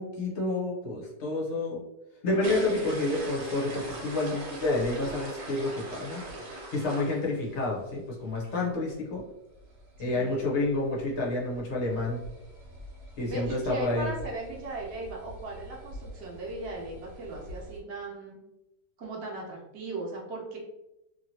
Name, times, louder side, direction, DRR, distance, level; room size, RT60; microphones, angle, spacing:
voice 1, 0.0-1.8 2.2-6.2 6.7-9.2 10.0-12.2 13.2-14.1, left 2 dB, 55° left, -3 dB, 0.9 m, -29 dB
sound 1, 2.4-7.9 8.3-8.5 8.9-9.0 9.2-9.3 9.5-17.8, right 1 dB, 65° right, 1.4 m, -42 dB
voice 2, 10.0-10.4 13.3-18.4 19.0-20.6, right 2 dB, 50° right, -3 dB, 0.9 m, -37 dB
2.8 x 2.8 x 2.7 m, 0.93 s
omnidirectional pair, 1.8 m